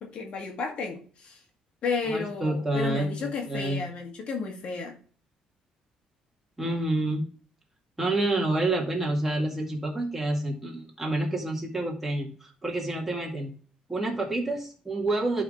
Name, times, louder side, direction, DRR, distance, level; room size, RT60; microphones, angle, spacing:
voice 1, 0.0-1.4 1.8-5.0, left 4 dB, 55° left, 2 dB, 2.0 m, -32 dB
voice 2, 2.1-3.9 6.6-7.2 8.0-13.5 13.9-15.4, right 2 dB, 10° right, -1 dB, 2.1 m, -28 dB
11.0 x 4.2 x 3.8 m, 0.40 s
cardioid pair, 130°, 2 cm